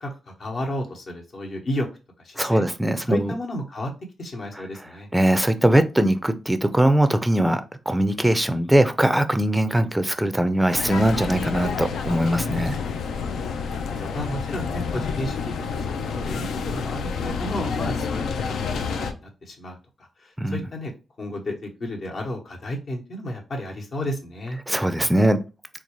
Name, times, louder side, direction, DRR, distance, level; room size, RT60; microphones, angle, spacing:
voice 1, 0.0-1.9 2.2-2.6 3.1-3.9 4.2-5.1 13.5-20.9 21.2-24.6, left 1 dB, 55° left, 1 dB, 1.0 m, -32 dB
voice 2, 2.4-3.3 5.1-7.6 7.9-12.8 20.4-20.6 24.7-25.4, right 1 dB, 5° right, 10 dB, 0.4 m, -21 dB
sound 1, 10.7-19.1, left 5 dB, 85° left, 0.4 m, -29 dB
3.9 x 2.3 x 3.0 m, 0.31 s
cardioid pair, 90°, 0 cm